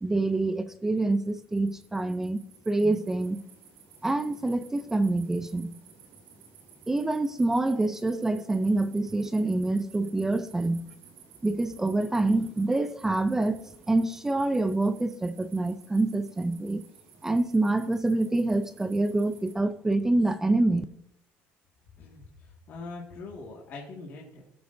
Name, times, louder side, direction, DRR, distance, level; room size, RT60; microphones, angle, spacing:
voice 1, 0.0-3.4 4.0-5.7 6.9-10.9 11.4-16.8 17.2-20.8, right 2 dB, 10° right, 0.4 m, -26 dB
sound 1, 0.9-19.5, right 6 dB, 85° right, 3.4 m, -55 dB
voice 2, 22.0-24.4, left 3 dB, 45° left, 1.8 m, -42 dB
16.5 x 7.8 x 2.6 m
cardioid pair, 150°, 5 cm